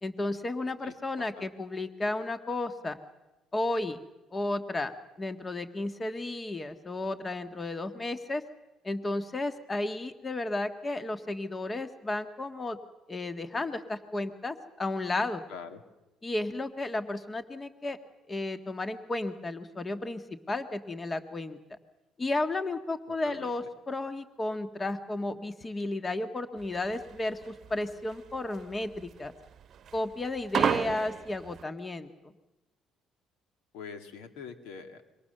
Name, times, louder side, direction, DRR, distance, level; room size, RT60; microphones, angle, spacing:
voice 1, 0.0-3.0 3.5-4.0 4.3-8.4 8.8-12.8 13.1-15.4 16.2-18.0 18.3-21.6 22.2-29.3 29.9-32.3, left 2 dB, 25° left, 9 dB, 1.7 m, -33 dB
voice 2, 0.8-1.5 15.5-15.8 23.2-23.6 33.7-35.0, left 6 dB, 85° left, 8 dB, 2.4 m, -44 dB
sound 1, 26.6-31.6, right 8 dB, 55° right, 0.9 m, -31 dB
26.5 x 24.0 x 6.8 m, 1.0 s
supercardioid pair, 75°, 0 cm